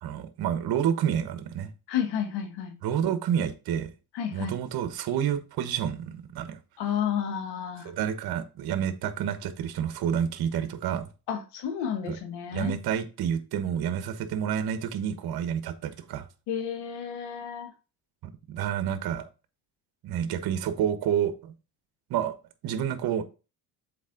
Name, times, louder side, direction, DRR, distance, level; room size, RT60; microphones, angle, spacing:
voice 1, 0.0-1.7 2.8-3.9 4.3-6.6 7.8-11.1 12.1-12.2 12.5-16.3 18.5-19.2 20.0-21.5 22.1-22.4 22.6-23.2, right 9 dB, 65° right, 1.1 m, -29 dB
voice 2, 1.9-2.7 4.1-4.5 6.8-7.9 11.3-12.7 16.5-17.7, left 8 dB, 90° left, 1.3 m, -31 dB
7.2 x 4.3 x 3.8 m
cardioid pair, 120°, 39 cm